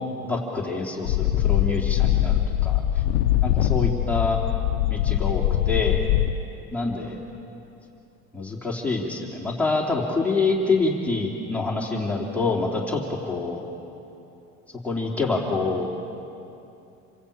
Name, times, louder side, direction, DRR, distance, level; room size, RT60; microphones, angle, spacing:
voice 1, 0.2-2.8 3.4-4.4 4.9-6.0 6.7-7.2 8.3-13.6 14.8-15.9, left 3 dB, 5° left, -3 dB, 3.1 m, -26 dB
sound 1, 1.1-6.3, left 13 dB, 90° left, 0.9 m, -22 dB
28.5 x 24.0 x 8.6 m, 2.7 s
cardioid pair, 155°, 34 cm